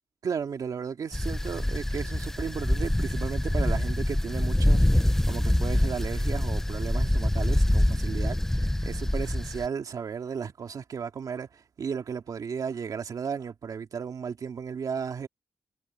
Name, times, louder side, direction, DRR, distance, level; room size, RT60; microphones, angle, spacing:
voice 1, 0.2-15.3, right 6 dB, 65° right, 2.5 m, -34 dB
sound 1, 1.1-9.7, left 1 dB, 5° left, 0.8 m, -25 dB
wide cardioid pair, 145°, 7 cm